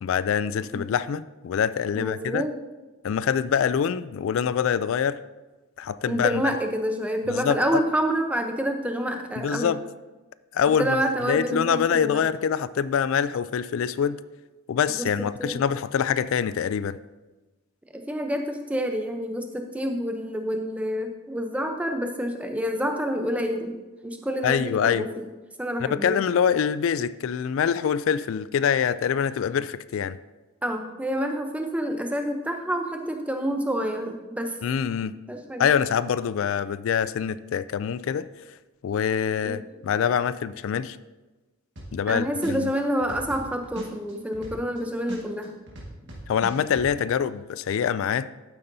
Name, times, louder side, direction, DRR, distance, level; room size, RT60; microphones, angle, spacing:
voice 1, 0.0-2.5 3.0-5.2 5.8-6.4 7.3-7.8 9.4-9.8 10.5-11.0 11.2-14.2 14.7-17.0 24.4-25.1 25.8-30.2 34.6-35.1 35.6-38.3 38.8-41.0 41.9-42.7 46.3-48.3, left 7 dB, 65° left, 16 dB, 0.3 m, -25 dB
voice 2, 1.9-2.6 6.1-9.7 10.8-12.2 15.0-15.1 15.4-15.6 17.9-23.8 24.0-25.3 25.6-26.2 30.6-34.6 35.3-35.7 39.4-39.6 42.1-45.5, equal, 5° right, 4 dB, 0.6 m, -28 dB
sound 1, 41.8-42.1 42.4-44.8 45.1-46.9, right 2 dB, 55° right, 1.8 m, -39 dB
12.0 x 9.0 x 2.7 m, 1.2 s
head